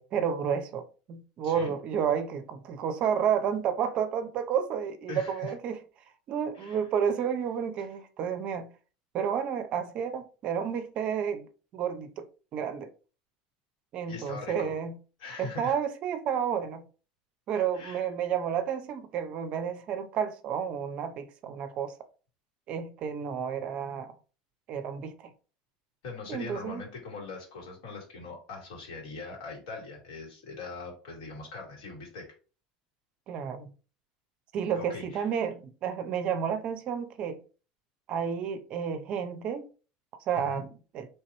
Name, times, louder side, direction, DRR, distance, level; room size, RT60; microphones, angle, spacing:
voice 1, 0.0-5.8 6.3-8.7 9.1-11.5 11.7-12.2 12.5-12.9 13.9-15.0 15.4-16.9 17.5-21.9 22.7-24.1 24.7-25.3 26.3-26.8 33.3-33.7 34.5-37.4 38.1-39.7 40.3-41.1, right 7 dB, 35° right, 0.6 m, -31 dB
voice 2, 1.4-1.8 5.1-5.5 6.5-6.8 14.1-14.7 15.2-15.8 17.7-18.0 26.0-32.3 34.7-35.3 40.3-40.6, left 3 dB, 70° left, 2.3 m, -41 dB
4.3 x 3.3 x 2.9 m
cardioid pair, 165°, 3 cm